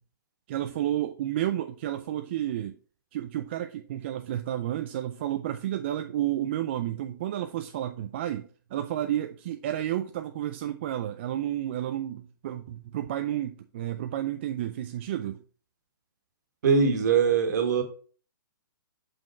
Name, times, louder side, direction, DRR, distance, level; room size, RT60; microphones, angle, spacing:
voice 1, 0.5-2.8 3.1-15.4, right 12 dB, 30° right, 0.4 m, -31 dB
voice 2, 16.6-17.8, right 6 dB, 55° right, 1.6 m, -22 dB
5.7 x 5.2 x 4.4 m
hypercardioid pair, 160°, 11 cm